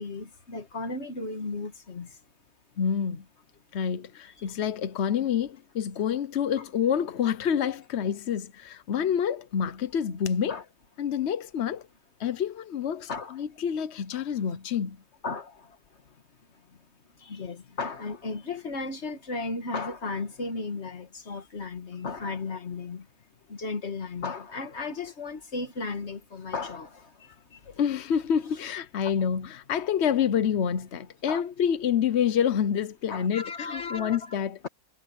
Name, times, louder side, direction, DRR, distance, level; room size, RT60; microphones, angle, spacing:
voice 1, 0.0-2.1 4.4-4.5 10.5-10.6 13.1-13.4 15.2-15.7 17.2-23.0 23.5-27.1 31.3-31.4 33.1-34.4, left 3 dB, 35° left, 1.9 m, -35 dB
voice 2, 2.8-3.2 3.7-10.6 11.0-11.8 12.2-15.0 27.5-34.7, left 8 dB, 55° left, 0.7 m, -28 dB
omnidirectional pair, 2.0 m